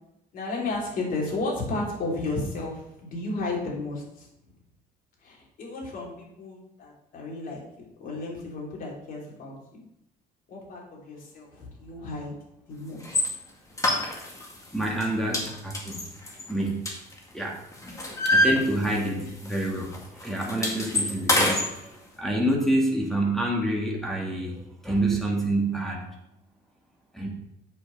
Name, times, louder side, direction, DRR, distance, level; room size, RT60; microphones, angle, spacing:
voice 1, 0.3-4.3 5.2-9.8 10.5-12.3 12.7-13.1 17.9-18.3 19.1-19.3, left 2 dB, 55° left, -3 dB, 3.5 m, -33 dB
sound 1, 13.0-13.3 13.8-14.5 14.8-15.1 15.3-17.4 17.7-19.2 19.5-19.7 19.9-21.7, left 1 dB, 20° left, 2.1 m, -25 dB
voice 2, 14.7-16.0 16.5-16.8 17.3-17.6 18.2-21.9 22.2-26.0 27.1-27.3, right 1 dB, ahead, -2 dB, 2.0 m, -27 dB
8.2 x 6.1 x 5.4 m, 0.81 s
cardioid pair, 110°, 17 cm